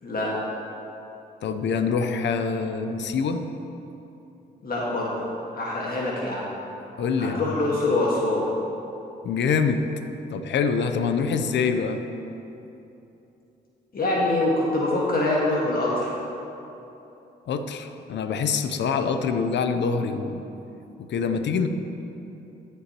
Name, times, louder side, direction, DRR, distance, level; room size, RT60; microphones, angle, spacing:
voice 1, 1.4-3.4 7.0-7.6 9.2-9.8 10.3-12.0 17.5-20.4 21.0-21.7, left 5 dB, 65° left, 8 dB, 0.7 m, -25 dB
voice 2, 4.6-5.1 5.5-6.5 7.2-8.5 13.9-16.1, left 2 dB, 50° left, -5 dB, 1.7 m, -24 dB
14.0 x 6.9 x 3.0 m, 2.9 s
supercardioid pair, 55°, 20 cm